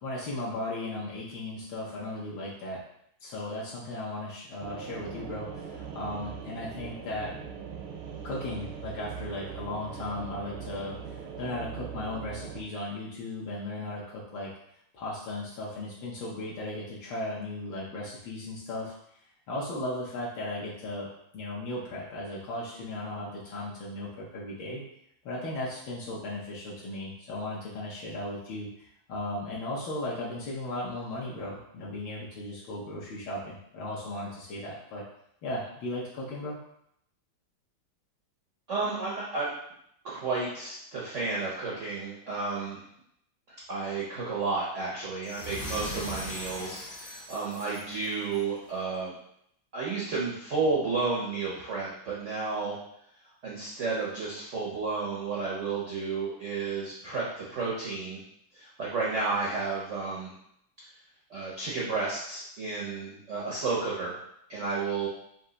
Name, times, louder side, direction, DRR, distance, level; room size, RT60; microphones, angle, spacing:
voice 1, 0.0-2.8 3.2-7.4 8.2-14.5 14.9-18.9 19.5-21.1 21.3-24.8 25.2-35.0 35.4-36.6, left 1 dB, 70° left, -5 dB, 1.4 m, -36 dB
sound 1, 4.6-12.6, right 7 dB, 85° right, 1.5 m, -41 dB
voice 2, 38.7-39.5 40.0-42.8 43.5-49.1 49.7-52.8 53.4-58.2 58.5-60.3 61.3-64.2 64.5-65.1, right 4 dB, 70° right, -5 dB, 0.7 m, -32 dB
sound 2, 45.2-48.5, left 1 dB, 50° left, 0.9 m, -39 dB
4.4 x 2.7 x 3.8 m, 0.74 s
omnidirectional pair, 2.3 m